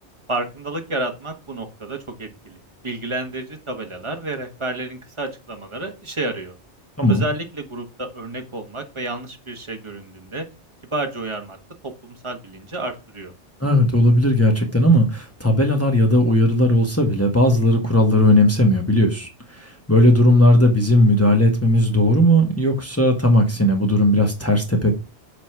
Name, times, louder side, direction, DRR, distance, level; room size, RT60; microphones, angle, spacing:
voice 1, 0.3-6.5 7.1-10.4 10.9-11.6 11.8-13.3, right 2 dB, 25° right, 1.4 m, -30 dB
voice 2, 13.6-19.3 19.6-24.9, left 1 dB, 15° left, 1.4 m, -17 dB
7.8 x 4.2 x 6.0 m
omnidirectional pair, 1.2 m